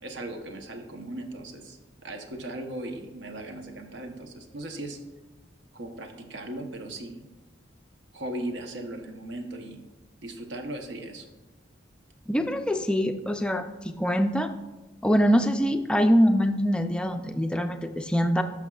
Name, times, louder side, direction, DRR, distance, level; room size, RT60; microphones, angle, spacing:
voice 1, 0.0-5.0 5.7-7.3 8.1-9.8 10.2-11.3, right 1 dB, 75° right, 4 dB, 0.9 m, -38 dB
voice 2, 12.3-14.5 15.0-18.4, equal, 5° left, 6 dB, 0.3 m, -24 dB
11.5 x 6.0 x 2.3 m, 1.1 s
head